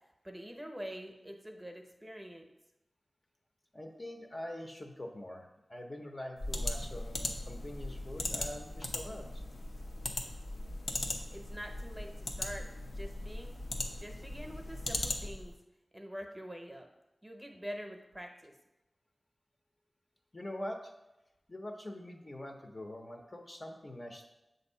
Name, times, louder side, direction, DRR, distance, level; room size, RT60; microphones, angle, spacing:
voice 1, 0.2-2.5 11.3-12.7 12.9-13.6 13.8-15.5 15.9-16.9 17.2-18.5, equal, 10° right, 2 dB, 0.8 m, -45 dB
voice 2, 3.7-9.4 20.3-20.9 21.5-24.3, left 1 dB, 30° left, 2 dB, 0.6 m, -44 dB
sound 1, 6.4-15.5, left 2 dB, 85° left, 0.6 m, -39 dB
7.4 x 2.6 x 5.4 m, 0.96 s
wide cardioid pair, 100°, 0 cm